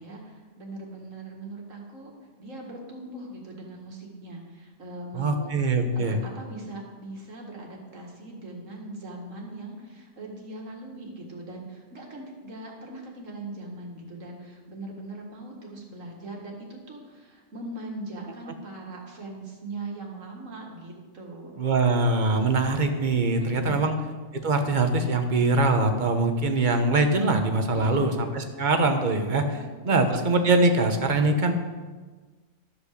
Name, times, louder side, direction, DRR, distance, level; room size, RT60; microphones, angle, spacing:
voice 1, 0.0-2.1 2.4-5.5 5.9-21.6 23.3-24.0 27.7-28.2 29.6-30.3, right 2 dB, 75° right, 0 dB, 2.2 m, -40 dB
voice 2, 5.1-6.2 21.6-24.0 24.4-29.6 29.8-31.5, right 2 dB, 40° right, 6 dB, 1.0 m, -23 dB
12.5 x 5.3 x 6.6 m, 1.4 s
omnidirectional pair, 1.4 m